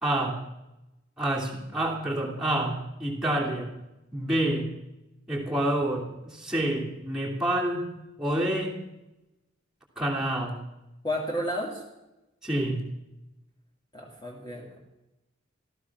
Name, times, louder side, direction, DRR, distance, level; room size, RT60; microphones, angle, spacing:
voice 1, 0.0-0.4 1.2-3.7 4.1-4.7 5.3-7.9 8.2-8.8 10.0-10.6 12.4-12.8, right 1 dB, ahead, -4 dB, 2.8 m, -28 dB
voice 2, 11.0-11.8 13.9-14.8, equal, 20° left, -3 dB, 2.5 m, -32 dB
15.5 x 14.0 x 6.1 m, 0.94 s
head